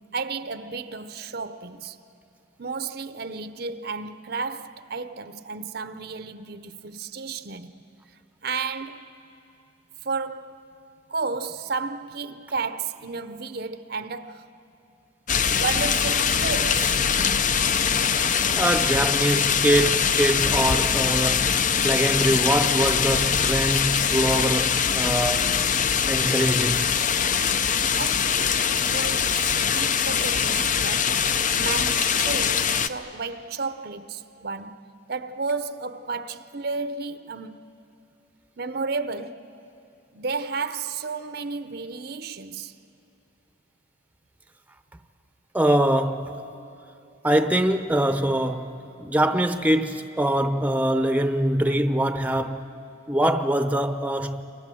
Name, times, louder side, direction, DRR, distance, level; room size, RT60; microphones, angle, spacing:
voice 1, 0.0-2.0 2.6-7.8 8.4-9.1 10.0-10.6 11.1-14.5 15.6-17.0 28.0-31.3 31.5-37.6 38.6-39.5 40.1-42.8, right 4 dB, 50° right, 0.7 m, -32 dB
sound 1, 15.3-32.9, left 7 dB, 40° left, 0.6 m, -23 dB
voice 2, 18.6-25.5 26.1-26.9 45.5-46.4 47.2-52.6 53.1-54.4, right 1 dB, 10° right, 0.7 m, -23 dB
29.5 x 25.0 x 7.7 m
head